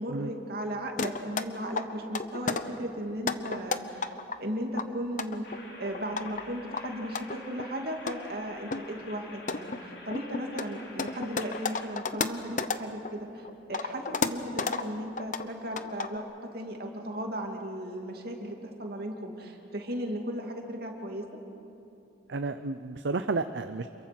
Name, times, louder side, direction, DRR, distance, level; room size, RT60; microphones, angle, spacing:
voice 1, 0.0-5.5 5.8-21.3, equal, 55° right, 2 dB, 2.5 m, -36 dB
sound 1, 1.0-1.4 1.8-2.6 3.1-4.4 4.7-6.4 6.7-7.7 8.1-8.2 8.7-8.8 9.3-13.1 13.5-14.8 15.2-15.5 15.8-16.2, left 4 dB, 45° left, 0.8 m, -32 dB
sound 2, 5.4-11.9, left 2 dB, 60° left, 3.4 m, -48 dB
voice 2, 22.3-23.9, right 3 dB, 80° right, 9 dB, 0.6 m, -31 dB
28.0 x 22.5 x 6.1 m, 2.8 s
head